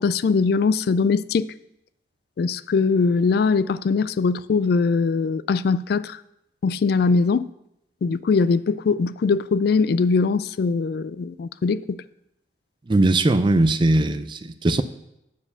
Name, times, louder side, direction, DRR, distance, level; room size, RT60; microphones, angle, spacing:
voice 1, 0.0-1.5 2.4-6.2 6.6-7.5 8.0-12.0, left 4 dB, 60° left, 0.3 m, -21 dB
voice 2, 12.9-14.8, right 2 dB, 25° right, 0.4 m, -19 dB
8.8 x 4.8 x 6.8 m
head